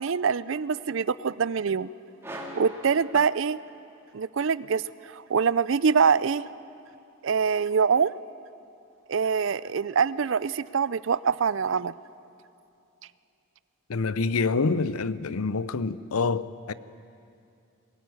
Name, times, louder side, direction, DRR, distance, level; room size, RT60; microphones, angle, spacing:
voice 1, 0.0-1.9 2.6-3.6 4.1-6.5 7.2-8.1 9.1-11.9, right 6 dB, 60° right, 0.5 m, -24 dB
sound 1, 2.2-4.0, equal, 10° right, 2.2 m, -41 dB
voice 2, 13.9-16.7, left 4 dB, 80° left, 0.6 m, -26 dB
22.0 x 18.0 x 9.4 m
head